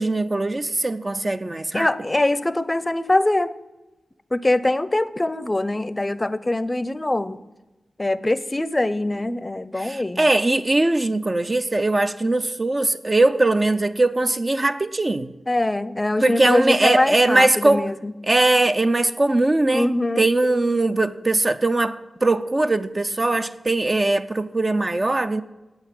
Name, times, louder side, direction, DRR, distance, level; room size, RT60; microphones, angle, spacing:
voice 1, 0.0-1.9 9.8-15.3 16.2-17.9 18.2-19.9 20.2-25.4, right 2 dB, 35° right, 0.5 m, -20 dB
voice 2, 1.7-3.5 4.3-7.4 8.0-10.2 15.5-18.1 19.7-20.3, left 1 dB, 25° left, 0.6 m, -23 dB
8.9 x 8.0 x 8.7 m
cardioid pair, 60°, 0 cm